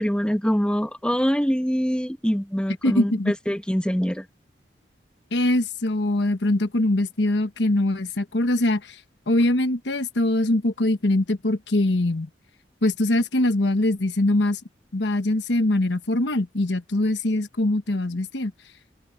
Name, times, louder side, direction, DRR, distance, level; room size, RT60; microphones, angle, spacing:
voice 1, 0.0-4.3, equal, 5° left, 1.5 m, -24 dB
voice 2, 2.8-3.3 5.3-9.0 9.3-12.3 12.8-14.6 14.9-18.5, left 1 dB, 85° left, 1.2 m, -22 dB
head